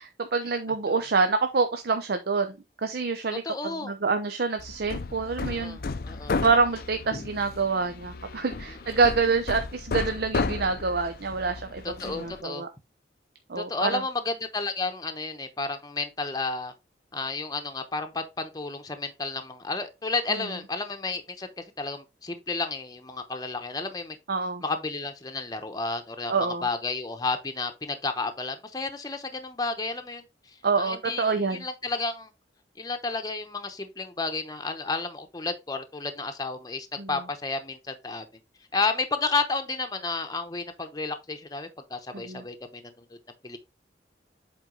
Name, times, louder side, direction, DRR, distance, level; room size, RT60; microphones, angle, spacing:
voice 1, 0.0-5.8 6.4-12.7 13.5-14.0 24.3-24.6 26.3-26.6 30.6-31.7 37.0-37.1 42.1-42.4, right 4 dB, 65° right, 0.7 m, -26 dB
voice 2, 3.4-4.0 5.4-6.3 8.9-9.0 11.8-12.6 13.6-16.7 17.1-24.2 24.6-30.2 30.8-32.3 32.8-38.3 38.7-43.0 43.4-43.6, left 3 dB, 20° left, 0.9 m, -32 dB
Hammer, 4.6-12.4, left 4 dB, 60° left, 0.5 m, -34 dB
7.9 x 3.8 x 3.8 m
head